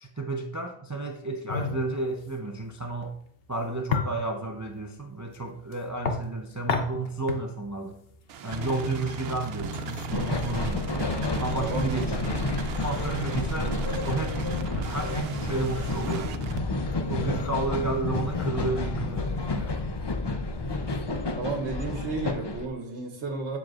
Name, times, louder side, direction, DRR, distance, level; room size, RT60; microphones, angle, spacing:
voice 1, 0.0-3.1 3.5-8.0 8.4-10.9 11.4-12.2 12.8-13.8 14.0-16.3 17.1-19.8, right 3 dB, 20° right, 2 dB, 0.5 m, -32 dB
sound 1, 1.5-21.0, left 6 dB, 60° left, 1.0 m, -37 dB
sound 2, 8.3-16.6, right 3 dB, 70° right, 0.8 m, -36 dB
sound 3, 10.1-22.7, left 2 dB, 35° left, 0.4 m, -30 dB
voice 2, 11.6-12.0 21.4-23.6, right 3 dB, 90° right, 2 dB, 1.2 m, -32 dB
7.7 x 7.6 x 2.4 m, 0.69 s
omnidirectional pair, 1.1 m